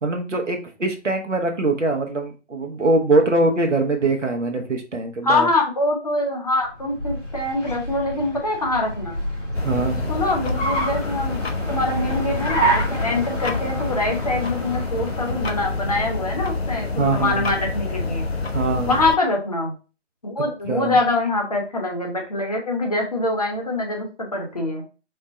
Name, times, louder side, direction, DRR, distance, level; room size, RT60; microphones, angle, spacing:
voice 1, 0.0-5.5 9.6-10.1 17.0-17.5 18.5-19.0 20.7-21.0, right 2 dB, 80° right, 3 dB, 0.9 m, -22 dB
voice 2, 5.2-9.2 10.1-11.4 11.7-18.3 18.9-19.7 20.2-24.8, left 2 dB, 30° left, 1 dB, 0.9 m, -24 dB
Car, 6.6-16.2, right 1 dB, 85° left, 1.5 m, -29 dB
sound 1, 9.5-19.2, left 3 dB, 55° left, 0.5 m, -27 dB
4.4 x 2.1 x 3.7 m, 0.33 s
figure-of-eight pair, 155°, 37 cm